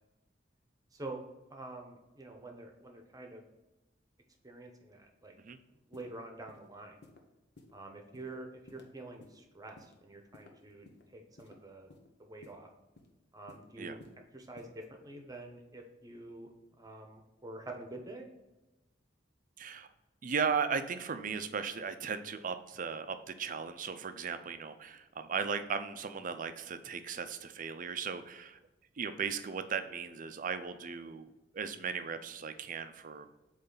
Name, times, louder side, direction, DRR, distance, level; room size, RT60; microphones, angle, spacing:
voice 1, 0.9-1.2 1.5-3.5 4.4-5.4 5.7-7.0 7.7-10.9 11.1-11.9 12.2-12.7 13.3-14.0 14.3-16.5 16.8-18.3, right 2 dB, 20° right, 3 dB, 0.9 m, -47 dB
sound 1, 5.9-6.1 6.5-6.7 7.0-7.2 7.6-7.7 8.1-8.3 8.7-8.8 9.2-9.4 9.8-10.0 10.3-11.0 11.4-11.5 11.9-12.1 12.4-12.6 12.9-13.1 13.5-13.7 14.0-14.2 14.6-14.7, left 2 dB, 65° left, 1.0 m, -55 dB
voice 2, 19.6-19.9 20.2-28.6 29.0-31.3 31.5-33.3, right 6 dB, 45° right, 9 dB, 0.5 m, -36 dB
7.9 x 3.2 x 3.9 m, 1.1 s
head